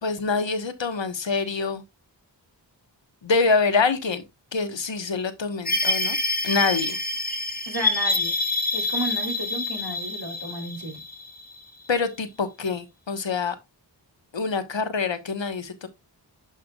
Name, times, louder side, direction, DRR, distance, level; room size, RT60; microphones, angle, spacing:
voice 1, 0.0-1.8 3.2-4.2 4.5-6.2 6.4-7.0 11.9-13.5 14.3-15.9, left 4 dB, 75° left, 1.3 m, -25 dB
sound 1, 5.7-11.9, left 2 dB, 20° left, 1.5 m, -27 dB
voice 2, 7.7-8.3 8.7-11.0, right 1 dB, 60° right, 3.4 m, -32 dB
11.5 x 5.8 x 2.3 m
wide cardioid pair, 85°, 45 cm